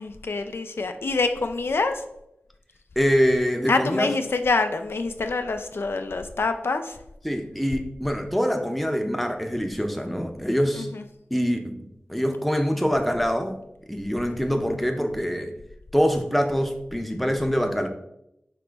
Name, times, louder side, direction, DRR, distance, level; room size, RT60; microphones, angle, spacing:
voice 1, 0.0-1.9 3.7-7.0 10.8-11.0 14.3-14.4, left 3 dB, 75° left, 7 dB, 0.3 m, -26 dB
voice 2, 3.0-4.1 7.2-10.9 11.3-11.7 12.1-13.6 13.9-15.5 15.9-17.9, equal, ahead, 4 dB, 0.6 m, -24 dB
5.0 x 3.0 x 3.3 m, 0.83 s
wide cardioid pair, 45°, 4 cm